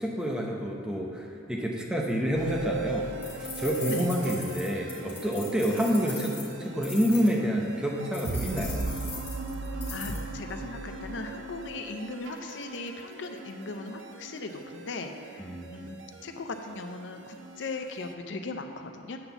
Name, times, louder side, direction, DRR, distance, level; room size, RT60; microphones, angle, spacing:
voice 1, 0.0-3.1 3.4-6.3 6.6-8.9 15.4-15.9, equal, 5° right, -1 dB, 0.8 m, -28 dB
sound 1, 2.3-18.1, right 3 dB, 85° right, 0.6 m, -38 dB
sound 2, 3.2-7.3 8.1-10.2, left 4 dB, 15° left, 1.5 m, -41 dB
voice 2, 9.9-19.2, left 3 dB, 80° left, 6 dB, 0.5 m, -38 dB
8.7 x 4.0 x 6.9 m, 2.5 s
head